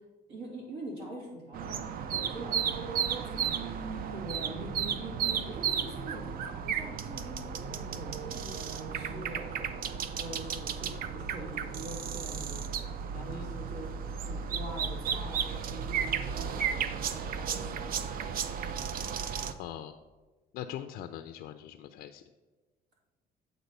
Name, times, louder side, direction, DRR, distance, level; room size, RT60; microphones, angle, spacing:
voice 1, 0.3-1.8 2.1-3.7 4.1-6.3 6.6-12.7 13.1-13.9 14.1-19.0, right 1 dB, 80° right, -2 dB, 2.6 m, -44 dB
sound 1, 1.5-19.5, right 7 dB, 60° right, 0.5 m, -34 dB
voice 2, 13.1-13.5 19.6-20.0 20.5-22.2, left 11 dB, 75° left, 7 dB, 0.4 m, -42 dB
8.1 x 4.0 x 5.3 m, 1.3 s
cardioid pair, 110°, 17 cm